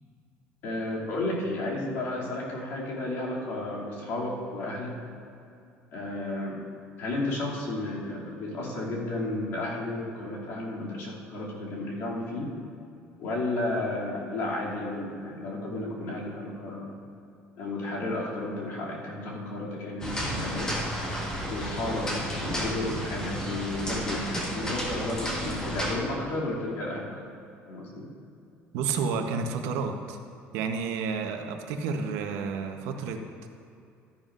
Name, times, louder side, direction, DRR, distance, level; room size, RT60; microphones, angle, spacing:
voice 1, 0.6-4.9 5.9-6.6 7.0-12.5 13.2-16.9 17.6-20.7 21.5-27.1 27.7-28.1, left 2 dB, 60° left, -5 dB, 2.6 m, -32 dB
sound 1, 20.0-25.9, equal, 15° left, 1.4 m, -32 dB
voice 2, 28.7-30.2 30.5-33.2, right 5 dB, 85° right, 5 dB, 0.9 m, -30 dB
13.0 x 10.5 x 2.5 m, 2.5 s
cardioid pair, 170°, 5 cm